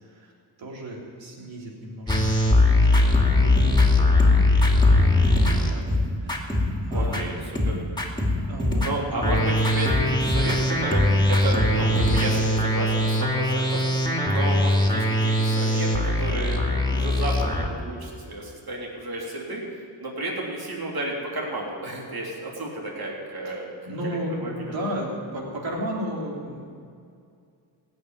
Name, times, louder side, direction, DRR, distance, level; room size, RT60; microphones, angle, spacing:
voice 1, 0.0-0.3 0.6-4.1 4.8-7.3 8.4-9.3 23.5-23.6 23.9-26.7, equal, 75° right, -3 dB, 3.5 m, -35 dB
sound 1, 2.1-7.3 7.6-17.7, left 1 dB, 10° left, 2.5 m, -21 dB
voice 2, 6.9-7.8 8.8-23.7 24.0-24.7, right 1 dB, 50° right, -2 dB, 3.5 m, -32 dB
16.5 x 6.4 x 9.5 m, 2.3 s
cardioid pair, 55°, 46 cm